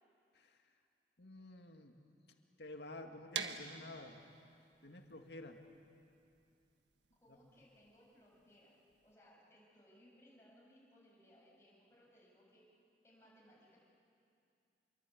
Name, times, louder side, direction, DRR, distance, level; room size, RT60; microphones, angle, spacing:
voice 1, 1.2-1.9 2.6-4.2 4.8-5.6, left 2 dB, 80° left, 4 dB, 2.2 m, -51 dB
sound 1, 3.3-9.1, right 7 dB, 85° right, 1.4 m, -47 dB
voice 2, 7.2-12.6 13.0-13.8, equal, 15° left, -5 dB, 7.4 m, -65 dB
27.0 x 23.5 x 8.6 m, 2.5 s
head